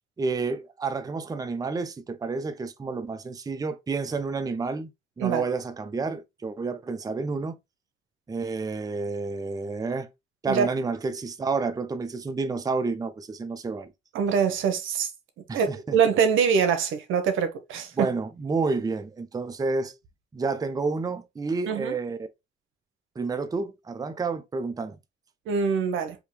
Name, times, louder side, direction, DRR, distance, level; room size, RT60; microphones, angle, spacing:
voice 1, 0.2-4.9 5.2-7.6 8.3-10.1 10.4-13.9 15.5-16.0 18.0-19.9 20.3-22.3 23.2-25.0, right 4 dB, 20° right, 0.5 m, -30 dB
voice 2, 14.1-15.1 15.5-17.9 21.7-21.9 25.5-26.2, right 6 dB, 80° right, 0.8 m, -24 dB
3.5 x 2.7 x 3.1 m
cardioid pair, 90°, 20 cm